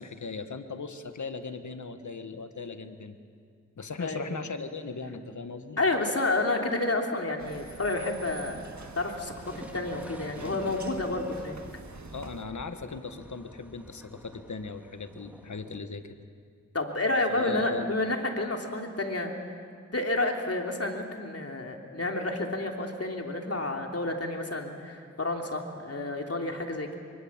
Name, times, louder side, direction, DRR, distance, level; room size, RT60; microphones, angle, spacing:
voice 1, 0.0-3.2 3.8-5.8 12.1-16.2 17.3-17.9, left 4 dB, 75° left, 9 dB, 1.5 m, -38 dB
voice 2, 5.8-8.6 8.9-11.6 16.7-19.3 19.9-27.0, left 2 dB, 55° left, 2 dB, 3.2 m, -30 dB
sound 1, 7.4-12.5, right 4 dB, 70° right, 1.7 m, -46 dB
sound 2, 9.4-15.8, equal, 5° right, 2.2 m, -48 dB
25.0 x 23.5 x 7.4 m, 2.2 s
cardioid pair, 45°, 30 cm